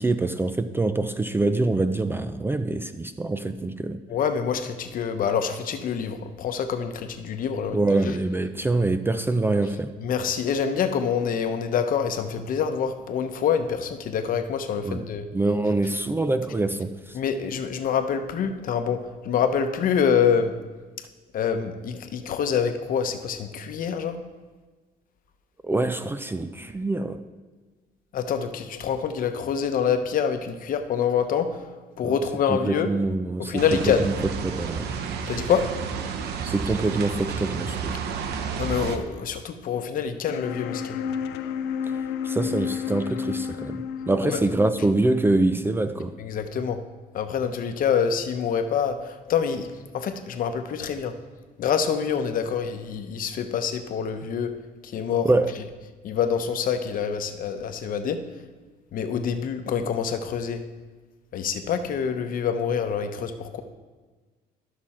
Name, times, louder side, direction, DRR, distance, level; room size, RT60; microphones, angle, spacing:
voice 1, 0.0-4.0 7.7-9.9 14.8-17.2 25.6-27.2 32.0-32.2 32.5-34.1 34.4-34.9 36.5-38.0 42.2-46.1 55.2-55.6, right 2 dB, 15° right, 0.4 m, -25 dB
voice 2, 4.1-7.8 10.0-15.2 17.1-19.0 19.2-20.5 21.3-24.2 28.1-31.5 32.0-32.9 33.4-34.1 35.3-35.6 38.6-41.0 44.3-44.4 46.2-46.8 47.1-49.7 49.9-51.1 51.6-54.5 54.9-55.3 56.0-58.2 58.9-60.6 61.3-63.6, left 7 dB, 55° left, 0.9 m, -26 dB
sound 1, 33.6-39.0, right 6 dB, 75° right, 0.9 m, -31 dB
sound 2, 40.2-46.2, left 7 dB, 85° left, 0.5 m, -32 dB
13.0 x 6.0 x 4.3 m
cardioid pair, 110°, 17 cm